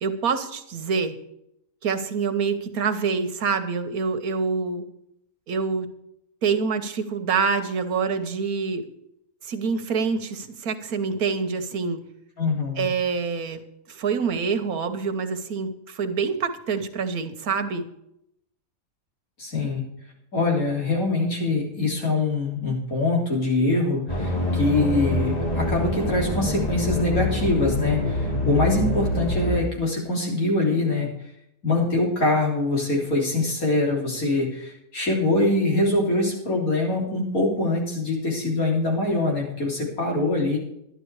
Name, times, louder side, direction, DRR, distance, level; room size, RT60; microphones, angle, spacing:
voice 1, 0.0-1.2 1.8-4.9 5.5-5.9 6.4-8.9 9.4-12.0 12.8-13.6 13.9-17.8, right 5 dB, 90° right, 9 dB, 1.6 m, -26 dB
voice 2, 12.4-12.9 19.4-19.8 20.3-31.1 31.6-40.6, left 2 dB, 75° left, -1 dB, 3.9 m, -24 dB
sound 1, 24.1-29.6, left 1 dB, 25° left, 2.3 m, -25 dB
11.5 x 11.0 x 4.7 m, 0.77 s
omnidirectional pair, 1.5 m